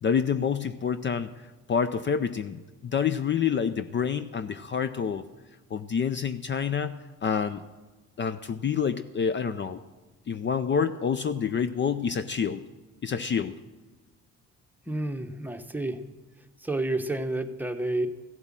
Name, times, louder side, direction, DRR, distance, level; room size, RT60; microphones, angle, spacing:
voice 1, 0.0-1.3 1.7-5.2 5.7-7.6 8.2-9.8 10.3-12.6 13.0-13.6, left 7 dB, 40° left, 12 dB, 0.5 m, -27 dB
voice 2, 14.9-16.0 16.6-18.1, right 2 dB, 5° right, 6 dB, 0.9 m, -30 dB
15.5 x 7.9 x 7.4 m, 1.2 s
cardioid pair, 90°, 30 cm